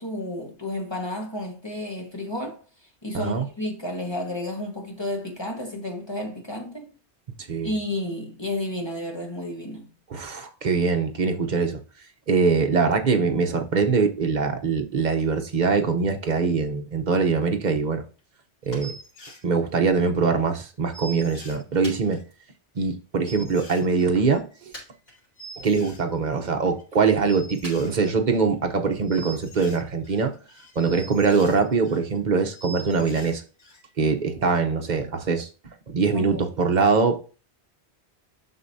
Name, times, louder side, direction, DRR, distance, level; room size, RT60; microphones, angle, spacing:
voice 1, 0.0-2.6 3.0-6.9 7.6-9.9 36.1-36.5, left 1 dB, 25° left, 1.4 m, -31 dB
voice 2, 3.1-3.4 7.5-7.7 10.1-11.8 12.3-18.0 18.7-18.9 19.4-22.2 22.8-24.5 25.6-30.3 30.8-33.4 34.0-35.5 35.9-37.2, right 4 dB, 45° right, 0.9 m, -23 dB
sound 1, 18.2-18.3 18.6-19.4 20.0-20.1 20.3-20.4 20.6-20.7 20.9-22.3 22.8-22.9 23.3-26.4 26.7-27.0 27.3-28.6 28.9-32.2 32.4-33.8 34.1-34.2, right 2 dB, 90° left, 1.8 m, -44 dB
sound 2, 18.7-19.0 19.3-20.5 21.0-21.1 21.8-22.9 23.3-23.4 24.3-24.4 24.7-25.6 26.0-26.6 27.6-31.7 32.0-32.1, left 1 dB, 75° left, 4.3 m, -48 dB
7.9 x 6.2 x 2.7 m
omnidirectional pair, 1.1 m